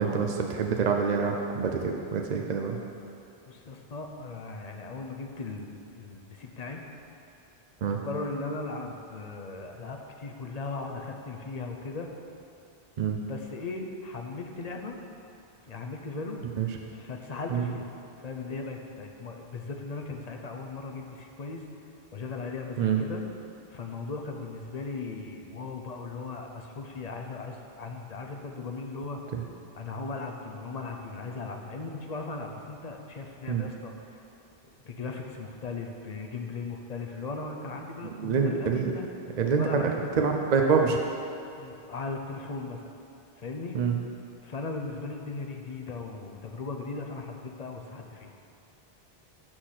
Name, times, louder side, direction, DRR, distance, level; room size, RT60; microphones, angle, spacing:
voice 1, 0.0-2.8 7.8-8.0 13.0-13.2 16.6-16.7 17.5-17.6 22.8-23.0 29.3-29.4 33.5-33.7 38.2-38.9 39.4-39.8 40.2-41.0 43.7-43.9, right 6 dB, 50° right, 2 dB, 0.6 m, -26 dB
voice 2, 3.5-6.8 7.8-12.1 13.3-15.0 15.7-16.4 16.9-17.9 18.2-21.6 22.1-23.2 23.7-29.2 29.7-34.2 34.9-39.1 39.6-40.0 41.6-42.8 43.4-43.8 44.4-48.3, left 3 dB, 45° left, 3 dB, 0.7 m, -37 dB
6.1 x 5.9 x 6.4 m, 2.6 s
omnidirectional pair, 1.1 m